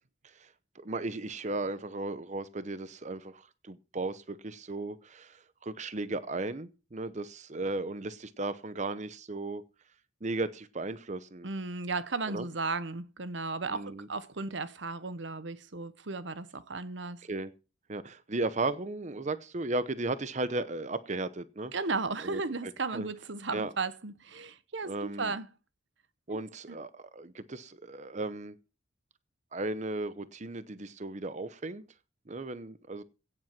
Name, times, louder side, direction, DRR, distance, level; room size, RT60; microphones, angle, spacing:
voice 1, 0.2-9.6 10.2-11.5 12.3-12.5 13.7-14.1 17.2-17.5 17.9-21.7 22.2-23.1 23.5-23.7 24.8-25.3 26.3-28.6 29.5-31.8 32.3-33.0, right 2 dB, 40° right, 0.8 m, -36 dB
voice 2, 11.4-17.2 21.7-25.5 26.3-26.4 26.7-26.8, right 3 dB, 70° right, 1.1 m, -35 dB
17.0 x 7.8 x 5.9 m
head